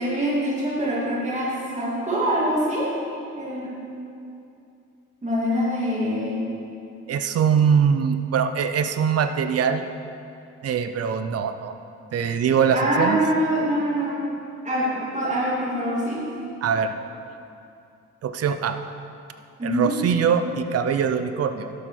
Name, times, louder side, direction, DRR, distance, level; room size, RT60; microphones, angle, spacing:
voice 1, 0.0-2.9 3.4-3.7 5.2-6.4 12.7-14.2 14.6-16.2 19.6-20.0, equal, 25° right, -6 dB, 2.7 m, -24 dB
voice 2, 7.1-9.9 10.6-11.7 12.1-13.2 16.6-16.9 18.2-18.8 19.6-21.7, right 7 dB, 55° right, 9 dB, 0.7 m, -22 dB
12.5 x 7.0 x 4.5 m, 2.6 s
cardioid pair, 90°, 30 cm